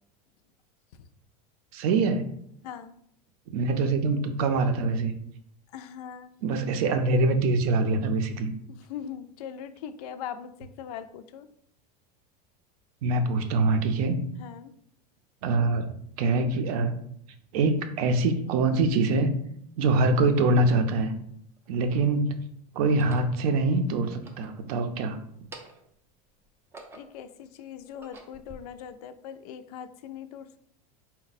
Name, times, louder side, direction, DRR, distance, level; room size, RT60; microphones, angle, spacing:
voice 1, 1.7-2.3 3.5-5.1 6.4-8.5 13.0-14.2 15.4-16.9 17.5-19.3 19.8-21.1 21.7-22.4 22.7-25.2, right 3 dB, 65° right, 8 dB, 0.6 m, -24 dB
voice 2, 2.6-2.9 5.7-6.3 8.7-11.5 14.4-14.7 26.9-30.6, left 8 dB, 70° left, 11 dB, 0.4 m, -41 dB
sound 1, 20.3-20.4 21.3-22.1 22.8-23.3 24.1-25.0 25.3-26.0 26.4-27.3 27.8-28.6, right 2 dB, 10° right, 0.3 m, -49 dB
4.2 x 2.1 x 4.0 m, 0.70 s
supercardioid pair, 150°, 20 cm